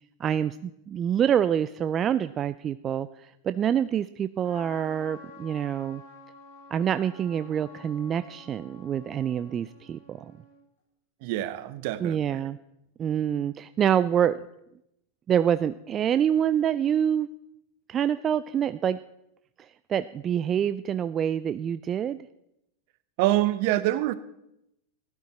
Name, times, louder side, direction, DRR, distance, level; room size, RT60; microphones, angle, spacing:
voice 1, 0.2-6.0 6.7-10.3 12.0-12.6 13.0-14.4 15.3-17.3 17.9-19.0 19.9-22.2, right 9 dB, 30° right, 13 dB, 0.4 m, -26 dB
Trumpet, 4.4-10.6, left 2 dB, 75° left, 6.0 m, -49 dB
voice 2, 11.2-12.5 23.2-24.1, right 15 dB, 55° right, 15 dB, 0.9 m, -26 dB
15.5 x 12.0 x 4.3 m, 0.82 s
hypercardioid pair, 100°, 0 cm